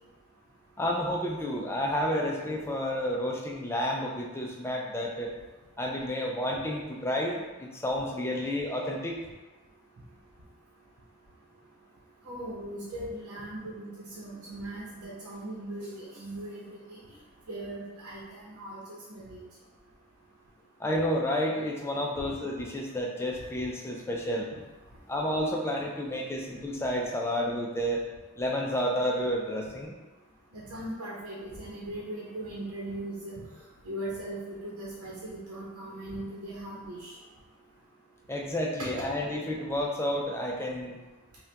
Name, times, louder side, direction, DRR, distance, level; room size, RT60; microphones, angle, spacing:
voice 1, 0.8-5.3 5.8-9.2 20.8-24.5 25.1-28.0 28.4-29.9 38.3-41.0, equal, 10° left, -1 dB, 0.4 m, -30 dB
voice 2, 12.2-17.0 17.5-19.4 22.2-22.3 30.5-33.3 33.8-37.1, right 1 dB, 85° right, -6 dB, 0.9 m, -39 dB
5.3 x 2.3 x 2.9 m, 1.2 s
head